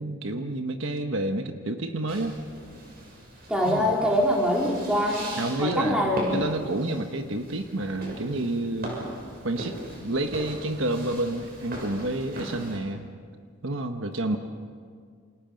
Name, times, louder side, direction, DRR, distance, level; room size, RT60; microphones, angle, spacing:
voice 1, 0.0-2.4 3.7-3.9 5.4-9.0 9.4-13.1 13.6-14.4, right 2 dB, 65° right, 6 dB, 1.2 m, -29 dB
sound 1, 2.1-12.8, equal, 45° right, 6.7 m, -39 dB
voice 2, 3.5-5.3 5.6-6.3, equal, 5° right, -3 dB, 4.1 m, -24 dB
29.0 x 27.0 x 5.3 m, 2.1 s
head